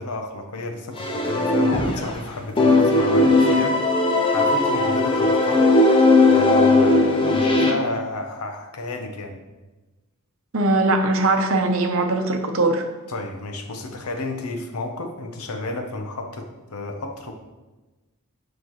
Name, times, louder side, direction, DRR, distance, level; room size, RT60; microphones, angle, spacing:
voice 1, 0.0-3.8 4.3-5.7 6.2-9.4 13.1-17.3, left 2 dB, 90° left, 5 dB, 0.9 m, -31 dB
sound 1, 1.0-2.2 2.6-7.7, left 2 dB, 25° left, 0.7 m, -18 dB
voice 2, 10.5-12.8, right 2 dB, 65° right, 5 dB, 0.8 m, -20 dB
7.8 x 5.1 x 3.1 m, 1.1 s
head